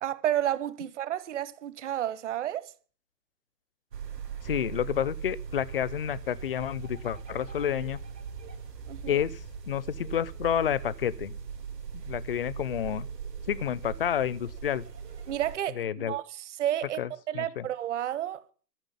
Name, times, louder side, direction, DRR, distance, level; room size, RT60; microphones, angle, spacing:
voice 1, 0.0-2.7 8.9-9.2 15.3-17.0 17.3-18.4, right 12 dB, 45° right, 1.1 m, -31 dB
sound 1, 3.9-15.6, right 6 dB, 75° right, 2.9 m, -40 dB
voice 2, 4.4-8.0 9.1-9.4 9.7-11.3 11.9-13.1 13.5-14.8 15.8-16.2 17.0-17.7, left 9 dB, 35° left, 0.5 m, -30 dB
13.5 x 6.3 x 10.0 m
hypercardioid pair, 135°, 49 cm